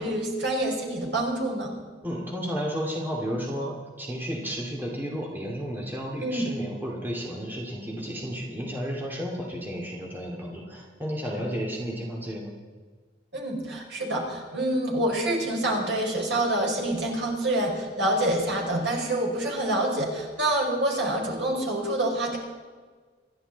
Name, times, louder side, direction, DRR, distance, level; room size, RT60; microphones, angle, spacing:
voice 1, 0.0-1.7 6.2-6.5 13.3-22.4, right 1 dB, 65° right, -1 dB, 5.2 m, -27 dB
voice 2, 2.0-12.5, equal, 10° right, -2 dB, 2.5 m, -32 dB
27.5 x 11.5 x 4.1 m, 1.4 s
head